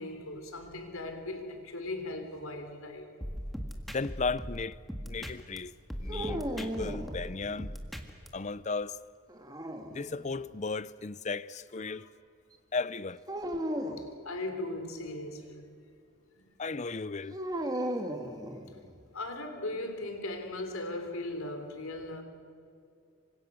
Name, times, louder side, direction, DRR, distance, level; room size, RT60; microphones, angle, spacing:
voice 1, 0.0-3.1 11.9-12.1 14.0-15.6 16.4-16.5 19.1-22.2, left 2 dB, 75° left, 3.7 m, -38 dB
sound 1, 3.2-5.6 5.9-8.3, equal, ahead, 1.7 m, -39 dB
voice 2, 3.9-4.8 5.1-5.7 6.0-7.7 8.3-9.0 9.9-12.1 12.7-13.2 16.6-17.4, left 4 dB, 35° left, 0.6 m, -35 dB
sound 2, 6.1-7.7 9.3-10.4 13.3-14.1 17.3-19.0, equal, 20° right, 1.7 m, -36 dB
27.5 x 25.5 x 6.3 m
head